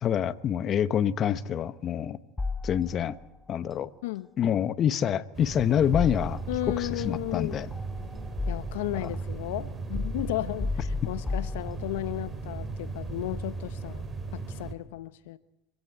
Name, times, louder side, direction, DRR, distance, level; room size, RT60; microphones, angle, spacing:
voice 1, 0.0-2.2 2.6-3.1 3.5-3.9 4.4-6.4 6.7-7.7 9.0-9.1, left 9 dB, 40° left, 1.1 m, -26 dB
sound 1, 2.4-3.3 5.9-6.8 7.7-9.0 9.9-12.2, left 3 dB, 15° left, 0.8 m, -33 dB
sound 2, 5.3-14.7, right 3 dB, 25° right, 3.3 m, -37 dB
voice 2, 6.5-7.6 8.5-14.0 14.3-15.4, left 16 dB, 75° left, 0.8 m, -34 dB
26.0 x 16.5 x 8.8 m
hypercardioid pair, 95°, 0 cm